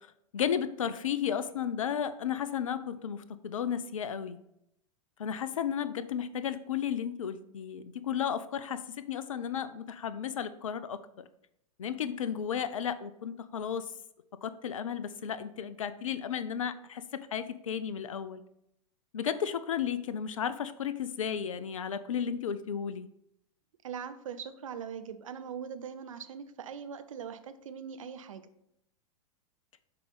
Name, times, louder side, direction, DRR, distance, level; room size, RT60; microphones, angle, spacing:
voice 1, 0.3-4.4 5.2-11.3 11.8-13.9 14.4-18.4 19.1-23.1, left 8 dB, 65° left, 14 dB, 0.6 m, -33 dB
voice 2, 23.8-28.5, right 7 dB, 65° right, 10 dB, 0.7 m, -41 dB
7.5 x 4.8 x 4.0 m, 0.79 s
figure-of-eight pair, 95°, 18 cm